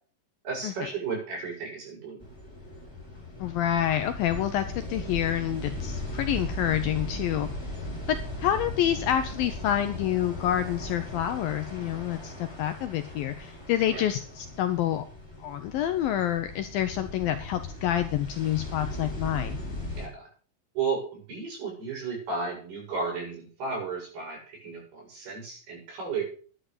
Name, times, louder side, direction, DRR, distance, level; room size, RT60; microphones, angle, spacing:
voice 1, 0.4-2.3 13.9-14.1 19.9-20.3 20.7-26.2, right 5 dB, 65° right, -2 dB, 9.3 m, -34 dB
sound 1, 2.2-20.1, left 1 dB, 5° left, 5.0 m, -38 dB
voice 2, 3.4-7.5 8.1-15.0 15.4-19.6, left 11 dB, 75° left, 9 dB, 2.2 m, -28 dB
11.0 x 10.0 x 6.7 m, 0.43 s
omnidirectional pair, 4.9 m